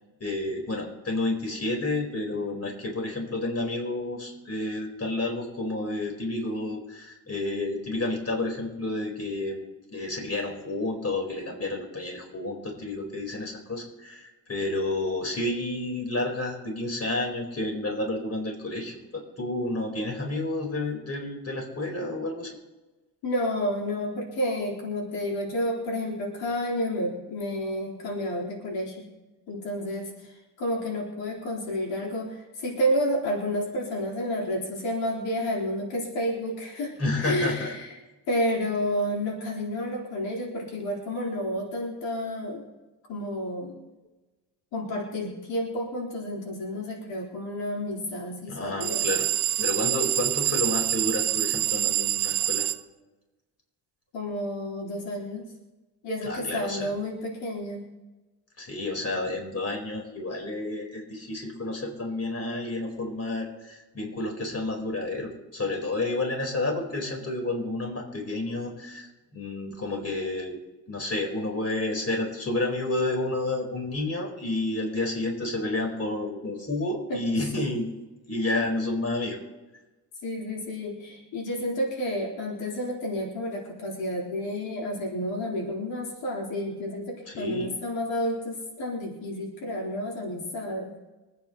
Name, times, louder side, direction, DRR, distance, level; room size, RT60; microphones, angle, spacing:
voice 1, 0.2-9.6 9.9-22.6 37.0-37.7 48.5-49.3 49.6-52.7 56.2-56.9 58.6-70.6 70.9-77.9 78.3-79.4 87.3-87.7, left 2 dB, 35° left, 1 dB, 4.4 m, -30 dB
voice 2, 23.2-29.1 29.5-37.9 38.3-42.6 43.1-43.8 44.7-49.1 54.1-55.5 56.0-57.9 77.1-77.6 78.5-78.6 80.2-90.9, equal, 85° left, -3 dB, 4.2 m, -30 dB
sound 1, 48.8-52.8, right 13 dB, 65° right, 0.7 m, -26 dB
25.0 x 9.3 x 3.1 m, 1.1 s
supercardioid pair, 70°, 43 cm